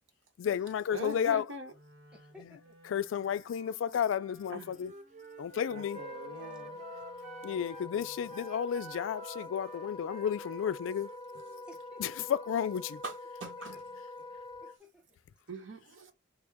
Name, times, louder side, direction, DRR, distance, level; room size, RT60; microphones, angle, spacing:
voice 1, 0.4-1.5 2.9-4.9 5.4-6.0 7.4-11.1 12.0-13.0, left 8 dB, 85° left, 0.3 m, -32 dB
voice 2, 0.9-1.7 4.5-4.7 5.7-6.8 7.4-7.5 13.0-13.7 15.5-16.1, right 1 dB, 85° right, 1.1 m, -43 dB
Wind instrument woodwind instrument, 1.7-8.4, right 1 dB, 60° right, 0.9 m, -60 dB
voice 3, 2.1-2.7 11.7-12.2 13.4-13.8 14.2-15.2, equal, 5° right, 0.9 m, -56 dB
Wind instrument woodwind instrument 2, 4.8-7.9 8.3-11.7, right 4 dB, 35° right, 0.4 m, -50 dB
Wind instrument woodwind instrument 3, 5.7-14.8, left 2 dB, 25° left, 0.5 m, -45 dB
3.4 x 2.1 x 3.4 m
head